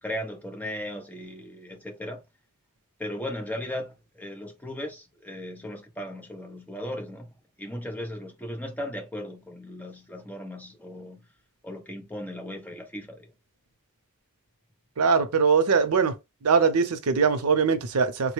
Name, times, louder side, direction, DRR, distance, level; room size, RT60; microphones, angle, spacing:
voice 1, 0.0-2.2 3.0-11.3 11.6-13.3, left 1 dB, 10° left, 0.6 m, -37 dB
voice 2, 15.0-16.1 16.4-18.3, right 5 dB, 80° right, 0.6 m, -22 dB
3.6 x 2.1 x 3.1 m
head